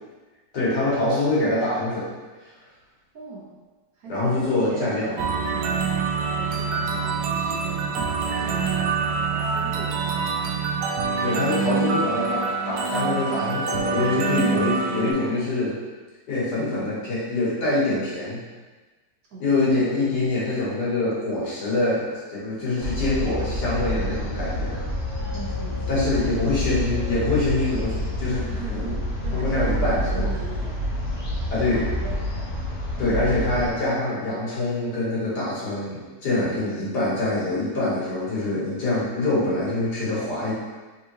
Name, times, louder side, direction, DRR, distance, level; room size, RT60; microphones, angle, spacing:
voice 1, 0.5-2.1 4.1-5.1 11.2-15.7 16.3-18.4 19.4-24.9 25.9-29.0 29.3-30.3 31.5-31.8 33.0-40.5, left 2 dB, 70° left, -8 dB, 1.9 m, -25 dB
voice 2, 3.1-3.5 3.9-5.9 6.4-8.1 8.4-10.4 15.0-15.5 16.6-17.0 19.3-20.3 25.2-26.4 28.5-30.8 31.7-32.2 33.0-33.7 36.6-37.4, right 2 dB, 65° right, -5 dB, 1.1 m, -40 dB
sound 1, 5.2-15.1, right 5 dB, 85° right, 1.2 m, -25 dB
sound 2, 22.8-33.7, left 1 dB, 40° left, 1.4 m, -28 dB
3.6 x 3.5 x 3.0 m, 1.3 s
omnidirectional pair, 1.9 m